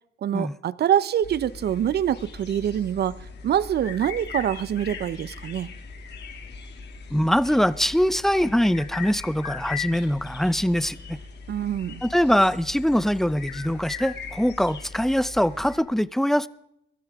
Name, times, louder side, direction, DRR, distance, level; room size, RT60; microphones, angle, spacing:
voice 1, 0.2-3.1 3.4-5.7 11.5-12.0, right 10 dB, 55° right, 0.7 m, -25 dB
sound 1, 1.2-15.8, left 5 dB, 60° left, 2.5 m, -39 dB
voice 2, 7.1-11.2 12.0-16.5, equal, ahead, 0.6 m, -23 dB
22.5 x 13.5 x 3.6 m
cardioid pair, 90°, 20 cm